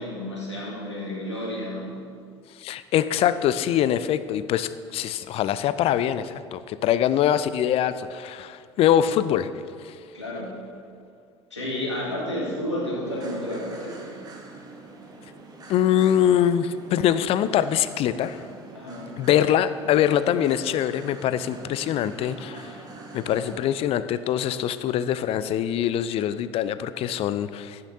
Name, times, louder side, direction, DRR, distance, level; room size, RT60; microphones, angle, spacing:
voice 1, 0.0-1.9 10.1-10.5 11.5-14.0 18.7-19.1, left 1 dB, 85° left, -5 dB, 2.1 m, -31 dB
voice 2, 2.6-9.5 9.8-10.0 15.7-18.4 19.2-22.8 23.1-27.9, left 10 dB, 40° left, 14 dB, 0.5 m, -23 dB
sound 1, 13.0-23.6, right 3 dB, 25° right, 1.6 m, -44 dB
14.5 x 9.4 x 2.8 m, 2.2 s
figure-of-eight pair, 65°, 15 cm